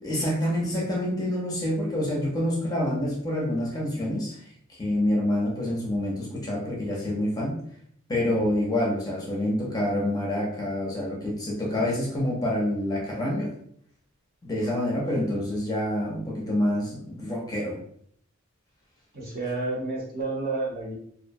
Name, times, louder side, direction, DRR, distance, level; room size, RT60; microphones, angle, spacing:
voice 1, 0.0-4.4 4.7-7.5 8.1-13.5 14.4-17.8, left 1 dB, 15° left, -4 dB, 0.5 m, -27 dB
voice 2, 19.1-20.9, right 3 dB, 45° right, -3 dB, 0.8 m, -30 dB
2.5 x 2.1 x 2.5 m, 0.65 s
head